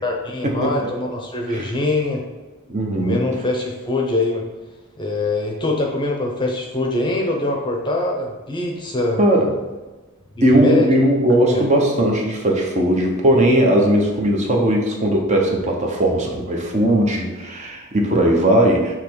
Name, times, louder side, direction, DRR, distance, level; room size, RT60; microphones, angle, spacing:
voice 1, 0.0-2.2 3.0-4.5 5.0-9.2 10.3-10.9 11.4-11.6, left 2 dB, 20° left, 0 dB, 0.8 m, -23 dB
voice 2, 2.7-3.2 9.2-9.5 10.4-18.9, right 1 dB, 30° right, 0 dB, 0.9 m, -18 dB
6.6 x 3.1 x 4.6 m, 1.2 s
head